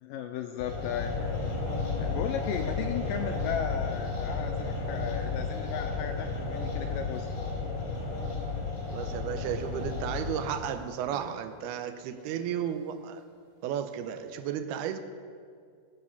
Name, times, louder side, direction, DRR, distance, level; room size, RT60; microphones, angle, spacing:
voice 1, 0.0-1.1 2.0-7.3, left 8 dB, 85° left, 5 dB, 2.0 m, -35 dB
sound 1, 0.6-10.5, left 4 dB, 45° left, 3.5 m, -33 dB
sound 2, 7.9-8.9 9.3-14.5, right 1 dB, 65° right, 4.2 m, -52 dB
voice 2, 8.9-13.2 13.6-15.0, right 9 dB, 85° right, 9 dB, 2.7 m, -33 dB
21.0 x 7.5 x 5.6 m, 2.2 s
omnidirectional pair, 4.5 m